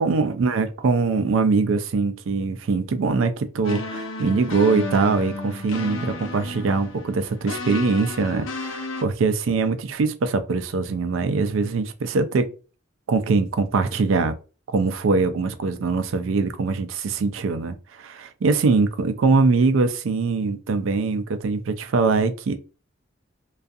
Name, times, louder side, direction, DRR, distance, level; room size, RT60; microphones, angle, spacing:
voice 1, 0.0-12.5 13.1-14.3 14.7-22.6, right 4 dB, 85° right, 0.4 m, -22 dB
sound 1, 3.6-9.0, left 2 dB, 85° left, 0.6 m, -33 dB
2.4 x 2.3 x 2.6 m
head